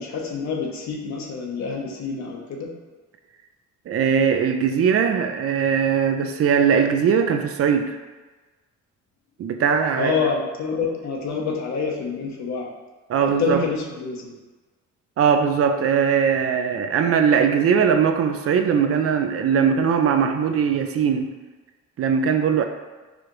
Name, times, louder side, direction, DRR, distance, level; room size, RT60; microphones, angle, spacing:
voice 1, 0.0-2.7 10.0-12.7 13.2-14.3, left 5 dB, 65° left, 0 dB, 0.8 m, -27 dB
voice 2, 3.9-8.0 9.4-10.1 13.1-13.6 15.2-21.3 22.0-22.6, right 7 dB, 50° right, 6 dB, 0.4 m, -20 dB
4.8 x 2.5 x 3.0 m, 1.2 s
cardioid pair, 90°, 30 cm